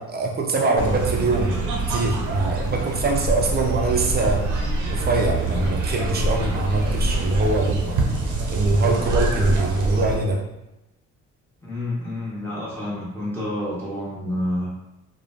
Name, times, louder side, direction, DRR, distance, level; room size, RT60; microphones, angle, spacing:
voice 1, 0.0-1.6 1.9-4.5 4.9-7.9 8.5-10.4, right 2 dB, 35° right, 1 dB, 0.5 m, -23 dB
sound 1, 0.8-10.1, right 2 dB, 85° right, 0.6 m, -25 dB
voice 2, 11.6-14.7, left 1 dB, 5° left, -8 dB, 1.2 m, -28 dB
3.0 x 2.1 x 2.5 m, 0.93 s
cardioid pair, 90°, 30 cm